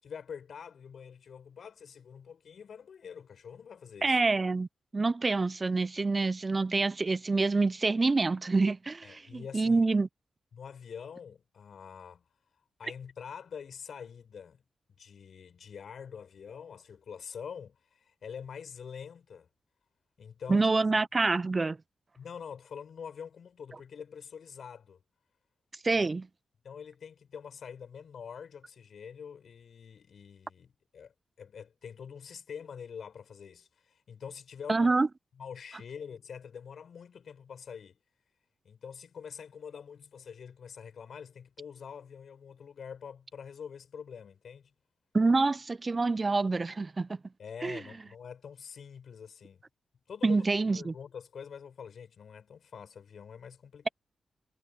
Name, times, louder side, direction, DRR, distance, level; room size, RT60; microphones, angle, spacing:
voice 1, 0.0-4.2 9.0-9.8 10.5-12.2 12.8-14.6 15.0-19.5 20.2-20.8 22.2-25.0 26.0-26.1 26.6-31.1 31.4-34.9 35.4-38.0 38.6-44.7 47.4-49.6 50.1-53.9, left 7 dB, 70° left, 7.4 m, -45 dB
voice 2, 4.0-4.7 4.9-10.1 20.5-21.8 25.8-26.3 34.7-35.1 45.1-47.2 47.6-47.8 50.2-50.9, right 3 dB, 40° right, 0.6 m, -27 dB
supercardioid pair, 40°, 0 cm